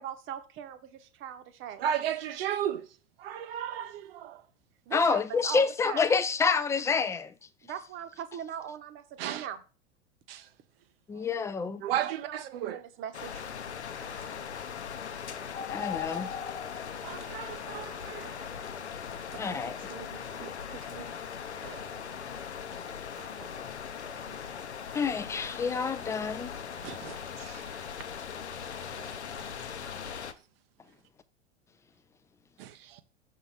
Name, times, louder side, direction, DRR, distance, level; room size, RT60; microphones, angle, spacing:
voice 1, 0.0-1.9 4.9-6.1 7.6-9.6 12.3-12.4 12.7-13.4 19.5-19.6 19.9-21.1, right 9 dB, 35° right, 1.0 m, -40 dB
voice 2, 1.8-4.4 9.2-9.5 10.3-10.5 11.1-11.2 11.8-12.8 14.0-14.3 17.0-18.5 19.4-19.5 21.6-21.9 23.2-23.5 24.3-24.4 26.8-27.8 28.7-29.5 32.6-33.0, right 10 dB, 60° right, 0.6 m, -36 dB
voice 3, 4.9-7.3 11.1-11.8 15.7-16.3 19.4-19.8 24.9-26.5, left 5 dB, 10° left, 0.4 m, -28 dB
sound 1, 13.1-30.3, left 7 dB, 80° left, 0.7 m, -39 dB
5.9 x 3.7 x 5.5 m
figure-of-eight pair, 85°, 33 cm